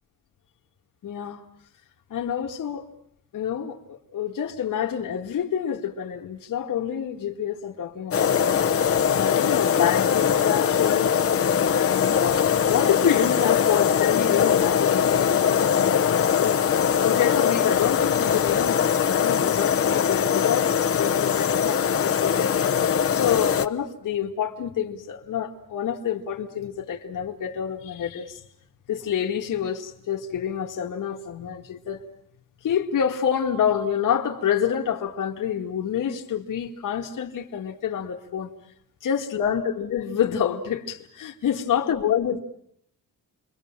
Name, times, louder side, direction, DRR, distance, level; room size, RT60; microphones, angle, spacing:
voice 1, 1.0-1.4 2.1-2.9 3.3-8.6 9.1-11.2 11.7-12.4 12.7-16.5 17.0-20.7 21.0-22.8 23.1-28.4 28.9-32.0 32.6-38.5 39.0-42.4, left 9 dB, 70° left, 2.2 m, -27 dB
sound 1, 8.1-23.7, left 8 dB, 45° left, 1.1 m, -21 dB
29.5 x 23.5 x 7.5 m
wide cardioid pair, 170°, 32 cm